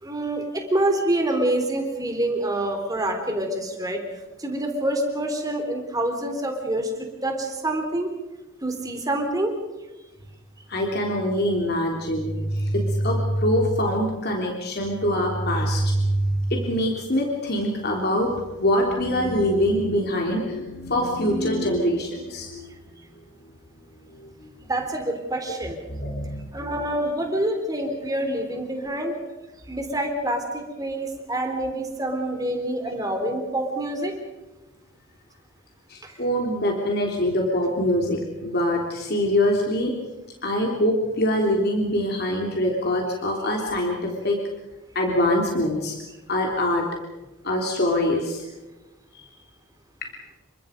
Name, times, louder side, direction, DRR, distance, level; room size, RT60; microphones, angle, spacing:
voice 1, 0.0-4.0 4.4-6.9 7.2-8.1 8.6-9.5 24.6-25.8 26.5-29.2 29.7-34.2 36.0-36.2, right 1 dB, 20° right, 4 dB, 3.6 m, -26 dB
voice 2, 10.7-22.7 24.0-24.6 25.9-26.5 35.9-39.9 40.4-44.4 44.9-45.9 46.3-46.8 47.4-48.4, equal, 50° left, 0 dB, 3.4 m, -24 dB
29.0 x 24.0 x 5.2 m, 1.1 s
head